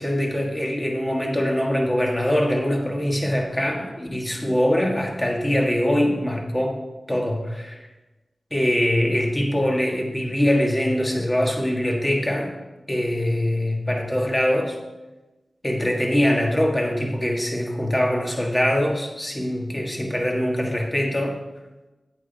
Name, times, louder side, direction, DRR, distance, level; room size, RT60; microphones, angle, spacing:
voice 1, 0.0-6.8 7.1-7.8 8.5-12.5 12.9-14.8 15.6-21.4, equal, 20° left, 0 dB, 1.9 m, -23 dB
9.1 x 8.2 x 4.2 m, 1.1 s
wide cardioid pair, 60°, 0 cm